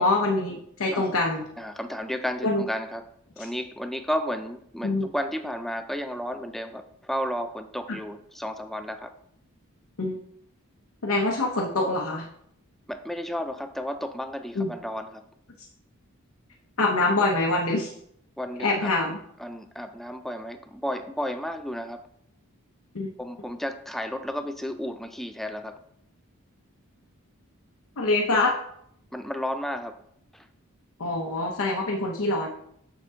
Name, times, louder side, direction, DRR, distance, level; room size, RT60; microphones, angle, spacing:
voice 1, 0.0-1.4 2.4-2.6 4.8-5.1 7.9-8.0 10.0-10.2 11.0-12.3 14.5-14.7 16.8-17.9 18.6-19.2 22.9-23.1 28.0-28.5 31.0-32.5, left 2 dB, 70° left, -1 dB, 0.9 m, -25 dB
voice 2, 1.6-3.1 3.4-9.1 12.9-15.2 18.4-18.9 19.4-22.1 23.2-25.8 29.1-30.0 30.3-30.5, equal, ahead, 8 dB, 0.4 m, -33 dB
6.8 x 6.0 x 3.7 m, 0.71 s
head